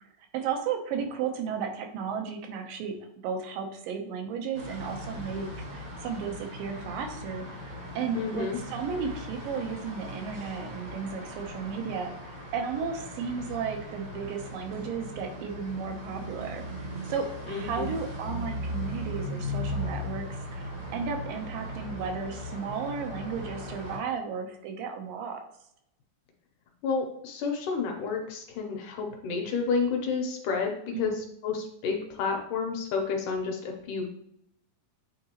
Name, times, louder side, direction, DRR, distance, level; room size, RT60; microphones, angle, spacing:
voice 1, 0.3-3.0 3.2-12.1 12.5-16.6 17.0-25.4 30.9-31.1, right 6 dB, 80° right, 4 dB, 2.5 m, -34 dB
sound 1, 4.5-24.0, equal, 55° right, 1.2 m, -38 dB
voice 2, 8.1-8.6 17.5-17.9 26.8-34.1, left 5 dB, 70° left, 2 dB, 2.1 m, -30 dB
8.5 x 3.8 x 2.9 m, 0.76 s
omnidirectional pair, 4.0 m